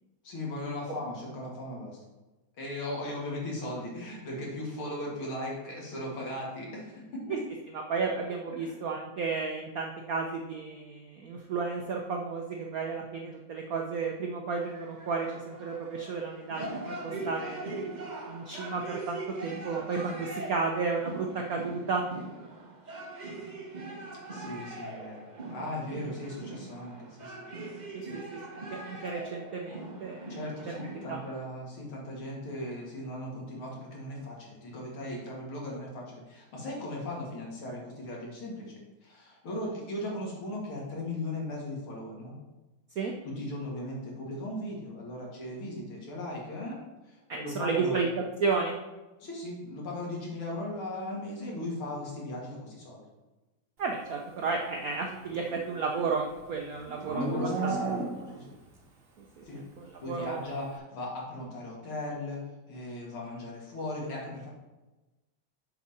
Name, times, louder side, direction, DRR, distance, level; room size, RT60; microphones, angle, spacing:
voice 1, 0.2-2.0 2.6-7.2 8.6-8.7 24.3-27.5 28.0-28.2 30.3-38.7 39.0-42.3 43.2-46.8 47.1-48.0 49.2-53.0 57.0-58.1 58.3-58.5 59.4-59.6 60.0-64.5, left 1 dB, 70° left, -3 dB, 2.8 m, -38 dB
voice 2, 7.9-17.9 18.3-22.0 27.9-28.2 28.5-30.4 31.1-31.2 43.0-43.1 47.3-48.1 48.4-48.7 53.8-57.2 59.2-59.4 59.8-60.5, right 4 dB, 70° right, 1 dB, 0.8 m, -33 dB
sound 1, 14.5-31.4, right 2 dB, 55° right, 0.5 m, -41 dB
Livestock farm animals working animals, 55.3-58.5, right 3 dB, 35° right, 1.0 m, -34 dB
7.1 x 5.8 x 4.2 m, 1.1 s
omnidirectional pair, 2.4 m